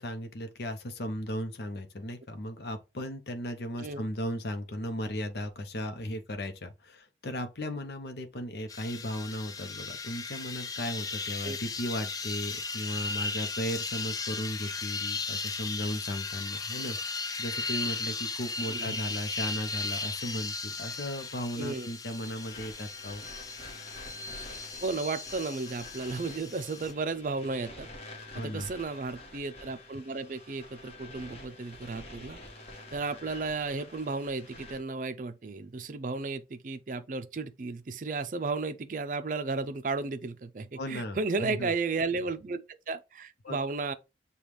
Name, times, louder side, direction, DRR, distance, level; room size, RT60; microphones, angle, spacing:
voice 1, 0.0-23.2 28.4-28.7 40.8-41.7 43.4-43.6, equal, 70° left, 0.7 m, -36 dB
sound 1, 8.7-26.9, left 4 dB, 20° left, 0.3 m, -36 dB
voice 2, 18.7-19.0 21.6-21.9 24.8-27.9 28.3-32.4 32.9-43.9, right 3 dB, 45° right, 0.4 m, -34 dB
sound 2, 22.2-34.8, left 2 dB, 35° left, 1.4 m, -48 dB
7.0 x 2.3 x 3.1 m
head